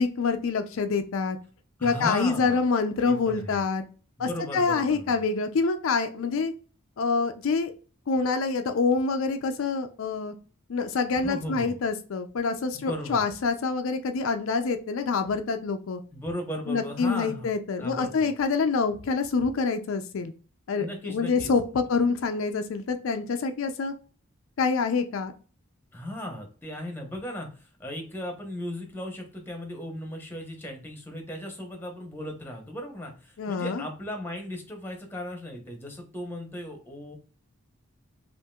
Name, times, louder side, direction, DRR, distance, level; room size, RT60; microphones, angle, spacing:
voice 1, 0.0-1.4 1.8-3.8 4.2-6.5 7.0-7.7 8.1-10.3 10.7-16.0 16.7-20.3 20.7-23.9 24.6-25.3 33.4-33.8, left 4 dB, 70° left, 7 dB, 0.4 m, -26 dB
voice 2, 1.8-2.6 3.0-3.6 4.2-5.3 11.1-11.8 12.7-13.2 16.1-17.5 17.8-18.3 20.8-21.8 25.9-37.2, left 1 dB, 10° left, 3 dB, 0.9 m, -36 dB
5.5 x 2.5 x 2.3 m, 0.37 s
head